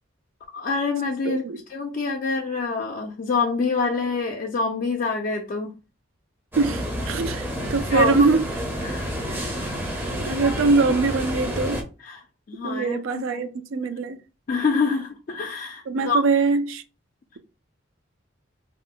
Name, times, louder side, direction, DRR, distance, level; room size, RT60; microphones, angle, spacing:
voice 1, 0.5-1.4 1.7-5.7 7.9-8.3 8.8-9.2 9.6-9.9 12.0-13.5 14.5-16.2, left 4 dB, 45° left, 0.3 m, -26 dB
voice 2, 1.2-1.6 6.6-8.5 9.3-9.5 10.0-11.8 12.6-14.2 15.9-16.8, right 3 dB, 75° right, 0.4 m, -23 dB
sound 1, 6.5-11.8, equal, 10° right, 0.5 m, -29 dB
2.4 x 2.1 x 3.5 m
head